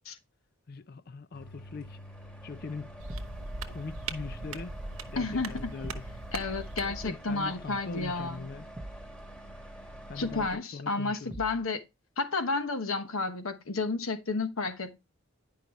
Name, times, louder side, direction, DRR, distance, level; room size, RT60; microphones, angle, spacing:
voice 1, 0.7-2.0 2.4-2.9 3.7-4.7 5.1-6.0 6.8-8.7 10.1-11.3, left 4 dB, 45° left, 0.5 m, -41 dB
sound 1, 1.3-10.6, right 1 dB, 5° left, 1.3 m, -47 dB
sound 2, 3.0-7.1, right 3 dB, 75° right, 1.0 m, -40 dB
sound 3, 3.1-3.5 5.8-6.2 8.7-9.1 11.3-11.7, right 1 dB, 20° right, 0.8 m, -43 dB
voice 2, 5.2-5.7 6.3-8.5 10.1-11.8 12.2-15.0, left 3 dB, 75° left, 1.1 m, -31 dB
10.5 x 5.4 x 3.1 m
head